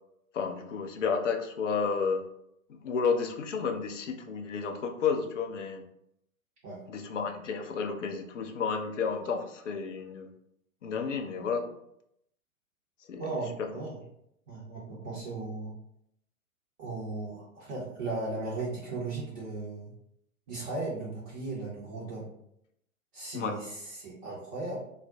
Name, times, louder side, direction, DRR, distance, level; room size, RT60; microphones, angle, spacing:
voice 1, 0.3-2.3 2.8-5.9 6.9-10.3 10.8-11.7 13.1-13.2 13.6-13.7 23.3-23.6, left 5 dB, 60° left, 5 dB, 0.5 m, -31 dB
voice 2, 13.2-14.0 14.5-15.7 16.8-19.9 20.5-22.3 23.1-24.8, right 3 dB, 25° right, -7 dB, 0.5 m, -36 dB
2.4 x 2.1 x 3.6 m, 0.76 s
figure-of-eight pair, 110°, 43 cm